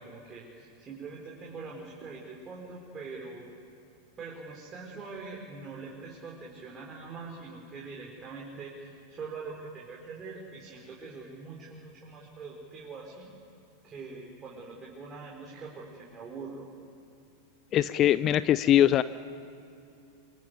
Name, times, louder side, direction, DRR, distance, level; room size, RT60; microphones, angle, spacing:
voice 1, 0.0-3.5 4.2-13.3 13.8-16.7, right 4 dB, 25° right, -3 dB, 4.4 m, -43 dB
voice 2, 17.7-19.0, left 11 dB, 30° left, 16 dB, 0.6 m, -22 dB
26.0 x 23.0 x 9.5 m, 2.6 s
figure-of-eight pair, 90°, 0 cm